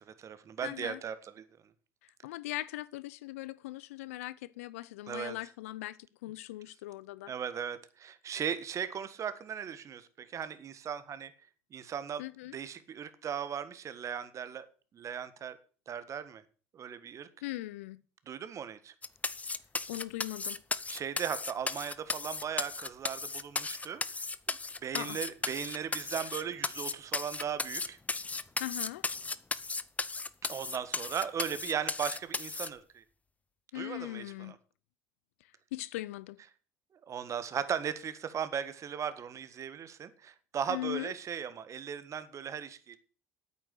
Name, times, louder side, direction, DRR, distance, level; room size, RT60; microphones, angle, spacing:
voice 1, 0.1-1.4 5.1-5.4 7.3-11.3 11.7-12.2 12.5-14.7 14.9-15.6 15.9-16.4 16.7-17.3 18.3-18.9 20.9-24.2 24.5-28.0 30.4-33.0 33.7-34.5 37.1-43.0, right 8 dB, 45° right, 1.5 m, -37 dB
voice 2, 0.6-1.0 2.0-7.3 12.2-12.6 17.4-18.0 19.9-20.6 24.9-25.2 28.6-29.1 33.7-34.6 35.7-36.4 40.7-41.1, left 17 dB, 80° left, 0.5 m, -40 dB
sound 1, 19.0-32.7, left 3 dB, 20° left, 0.8 m, -35 dB
8.9 x 8.8 x 8.2 m
hypercardioid pair, 70°, 7 cm